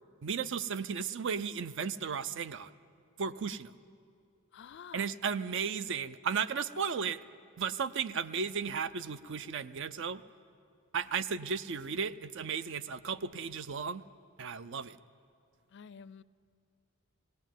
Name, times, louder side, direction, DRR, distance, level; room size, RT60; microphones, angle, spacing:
voice 1, 0.2-2.7 3.2-3.7 4.9-7.2 7.6-10.2 10.9-14.0 14.4-15.0, right 6 dB, 55° right, 14 dB, 0.5 m, -35 dB
voice 2, 4.5-5.1 15.7-16.2, left 7 dB, 55° left, 17 dB, 0.4 m, -49 dB
17.5 x 17.0 x 9.2 m, 2.4 s
head